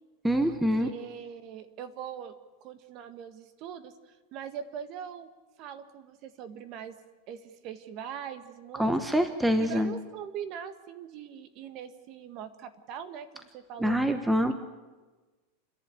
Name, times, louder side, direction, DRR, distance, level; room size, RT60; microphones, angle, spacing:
voice 1, 0.2-0.9 8.8-9.9 13.8-14.5, equal, 5° right, 8 dB, 1.0 m, -25 dB
voice 2, 0.8-2.3 2.6-5.3 5.6-7.0 7.3-9.0 9.6-14.0, right 8 dB, 40° right, 11 dB, 1.5 m, -41 dB
29.0 x 11.5 x 9.1 m, 1.3 s
supercardioid pair, 155°, 0 cm